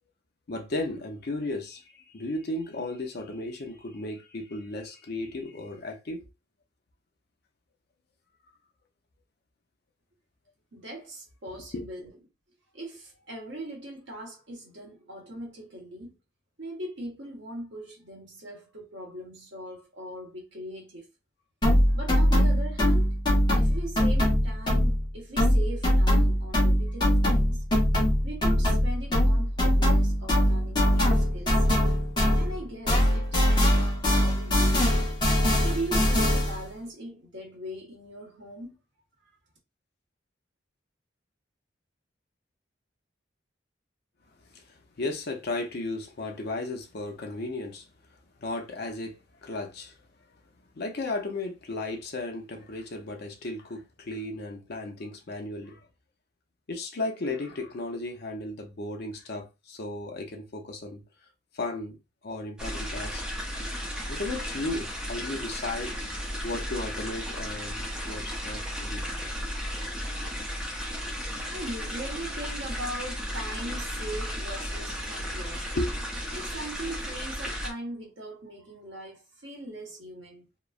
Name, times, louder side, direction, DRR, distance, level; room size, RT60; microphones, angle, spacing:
voice 1, 0.5-6.2 11.7-11.8 44.5-47.8 48.4-50.0 50.8-55.8 56.7-61.0 61.5-62.0 62.2-63.2 63.6-63.7 64.1-69.1 75.7-75.9, left 2 dB, 55° left, 0.6 m, -35 dB
voice 2, 10.7-12.1 12.7-16.1 16.6-21.1 21.9-23.2 23.5-27.6 28.2-31.7 32.4-35.0 35.6-38.8 71.2-75.7 76.3-80.5, right 1 dB, 70° right, 1.2 m, -40 dB
sound 1, 21.6-25.1 25.4-32.6 32.9-36.6, equal, 25° left, 1.0 m, -22 dB
sound 2, 62.6-77.7, equal, 5° right, 0.5 m, -34 dB
3.0 x 2.0 x 2.3 m
head